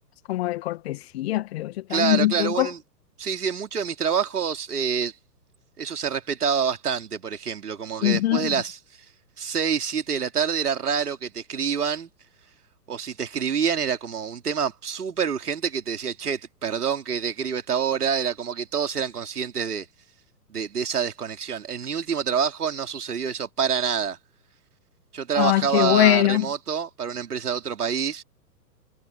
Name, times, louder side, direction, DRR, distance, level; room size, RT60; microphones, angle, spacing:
voice 1, 0.3-2.7 8.0-8.5 25.4-26.5, left 15 dB, 40° left, 2.0 m, -22 dB
voice 2, 1.9-2.8 3.2-5.1 5.8-8.8 9.4-12.1 12.9-19.9 20.5-24.2 25.1-28.2, right 7 dB, 65° right, 3.2 m, -27 dB
figure-of-eight pair, 120°, 50 cm